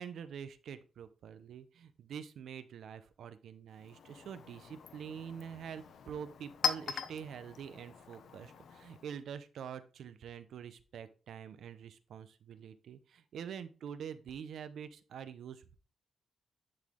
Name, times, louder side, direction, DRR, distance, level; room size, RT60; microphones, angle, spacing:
voice 1, 0.0-15.8, right 8 dB, 75° right, 12 dB, 0.7 m, -46 dB
Chink clink, 3.7-9.2, left 7 dB, 70° left, 0.8 m, -41 dB
10.5 x 4.1 x 3.7 m, 0.35 s
wide cardioid pair, 145°, 0 cm